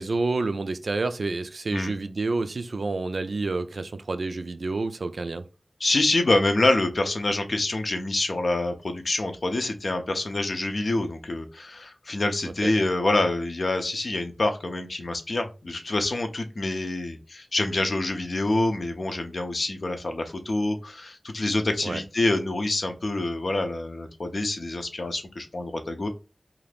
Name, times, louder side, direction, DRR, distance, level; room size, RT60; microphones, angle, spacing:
voice 1, 0.0-5.4 12.5-12.7 21.8-22.0, right 3 dB, 80° right, 0.3 m, -29 dB
voice 2, 5.8-26.1, left 2 dB, 70° left, 0.5 m, -26 dB
2.6 x 2.4 x 3.3 m
cardioid pair, 45°, 0 cm